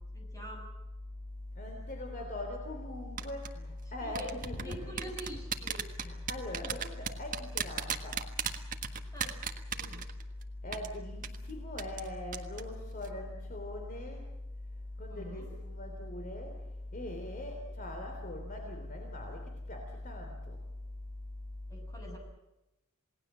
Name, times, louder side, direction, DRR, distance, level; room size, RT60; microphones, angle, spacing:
voice 1, 0.1-0.6 4.0-4.3 4.6-5.9 6.6-6.8 9.1-9.4 9.7-10.0 15.1-15.5 21.7-22.2, right 1 dB, 15° left, 1 dB, 6.9 m, -46 dB
voice 2, 1.6-5.1 6.0-8.2 10.6-14.2 15.0-16.5 16.9-19.4 19.7-20.6, left 1 dB, 40° left, 3 dB, 3.4 m, -40 dB
sound 1, 3.2-3.5 4.1-10.4 10.7-10.9 11.2-11.4 11.8-12.1 12.3-12.6 12.9-13.1, right 8 dB, 40° right, 1.6 m, -35 dB
28.0 x 18.5 x 7.5 m, 0.96 s
head